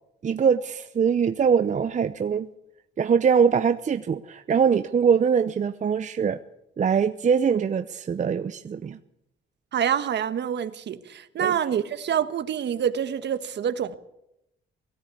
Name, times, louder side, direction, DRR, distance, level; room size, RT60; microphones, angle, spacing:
voice 1, 0.2-2.5 3.0-6.4 6.8-9.0 11.4-11.5, right 6 dB, 40° right, 0.7 m, -22 dB
voice 2, 9.7-14.0, right 8 dB, 60° right, 1.4 m, -26 dB
19.0 x 16.0 x 8.5 m
cardioid pair, 90°, 20 cm